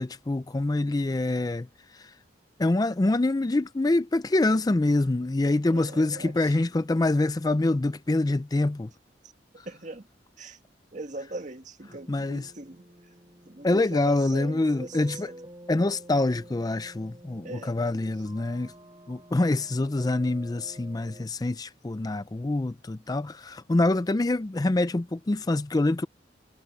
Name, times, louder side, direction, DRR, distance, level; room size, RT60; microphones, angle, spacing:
voice 1, 0.0-1.7 1.9-2.1 2.6-8.9 9.6-9.7 12.1-12.5 13.6-15.3 15.7-18.7 19.1-26.1, left 2 dB, 20° left, 0.4 m, -25 dB
voice 2, 5.7-6.5 9.7-10.1 10.4-10.6 10.9-12.8 13.5-15.3 17.4-17.8, right 2 dB, 45° right, 1.7 m, -41 dB
sound 1, 11.9-21.3, right 1 dB, 25° right, 7.3 m, -49 dB
head